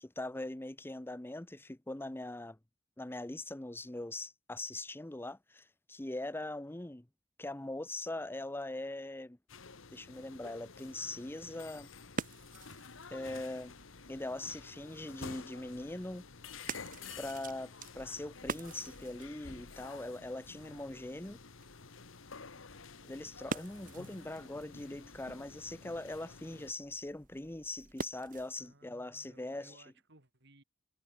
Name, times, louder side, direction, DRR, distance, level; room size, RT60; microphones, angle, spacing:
voice 1, 0.0-2.6 3.0-7.1 7.4-9.4 9.9-11.9 13.1-13.7 14.1-16.2 17.2-21.4 23.1-29.8, left 2 dB, 10° left, 0.7 m, -41 dB
sound 1, 9.5-26.7, left 5 dB, 80° left, 1.5 m, -51 dB
sound 2, 11.6-28.7, right 4 dB, 45° right, 1.0 m, -48 dB
voice 2, 28.6-30.6, right 2 dB, 60° right, 4.8 m, -61 dB
head